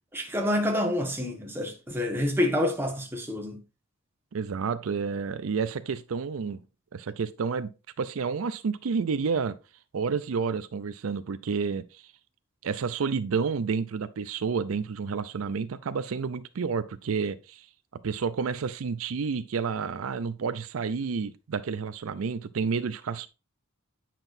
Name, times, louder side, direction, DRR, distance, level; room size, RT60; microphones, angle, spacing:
voice 1, 0.1-3.6, left 1 dB, 10° right, 1.4 m, -28 dB
voice 2, 4.3-6.6 6.9-7.7 8.0-9.6 9.9-12.1 12.6-17.7 18.0-23.3, right 5 dB, 75° right, 0.5 m, -30 dB
9.0 x 5.9 x 2.6 m
head